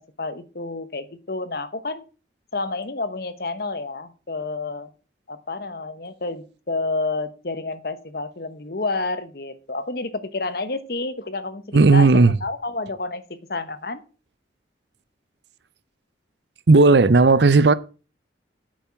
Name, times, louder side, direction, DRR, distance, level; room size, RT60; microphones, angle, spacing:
voice 1, 0.2-2.0 2.5-4.9 5.3-13.2 13.5-14.0, left 3 dB, 55° left, 1.1 m, -29 dB
voice 2, 11.7-12.3 16.7-17.7, right 3 dB, 70° right, 0.6 m, -14 dB
9.0 x 8.7 x 5.9 m
head